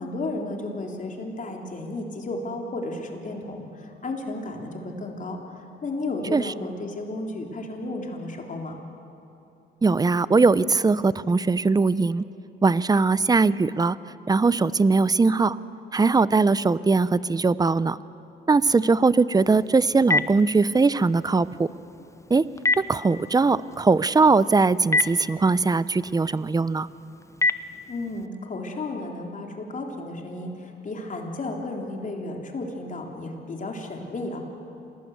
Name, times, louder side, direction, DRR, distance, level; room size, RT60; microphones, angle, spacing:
voice 1, 0.0-8.7 27.9-34.4, left 2 dB, 40° left, 2 dB, 3.5 m, -33 dB
voice 2, 9.8-12.2 12.6-14.0 14.3-15.6 15.9-18.0 18.5-21.7 22.3-22.5 22.8-26.9, right 4 dB, 20° right, 17 dB, 0.6 m, -20 dB
Telephone, 19.4-28.3, left 3 dB, 15° left, 0.9 m, -31 dB
27.0 x 19.0 x 8.1 m, 2.8 s
cardioid pair, 90°, 20 cm